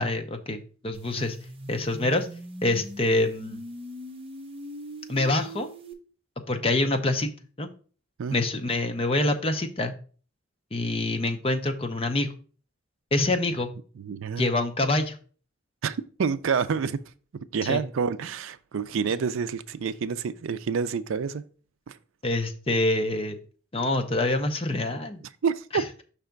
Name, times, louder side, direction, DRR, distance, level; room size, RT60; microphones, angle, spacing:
voice 1, 0.0-1.4 1.7-2.3 2.6-3.6 5.1-5.7 6.5-7.3 7.6-7.7 8.3-9.9 10.7-12.3 13.1-13.7 14.4-15.2 17.6-17.8 22.2-23.4 23.7-25.2 25.7-25.8, left 2 dB, 25° left, 0.6 m, -26 dB
sound 1, 0.9-5.9, equal, 25° right, 0.7 m, -41 dB
voice 2, 14.0-14.5 15.8-17.0 17.5-21.4 21.9-22.0 25.4-25.8, right 6 dB, 70° right, 0.4 m, -28 dB
5.7 x 3.4 x 5.1 m
head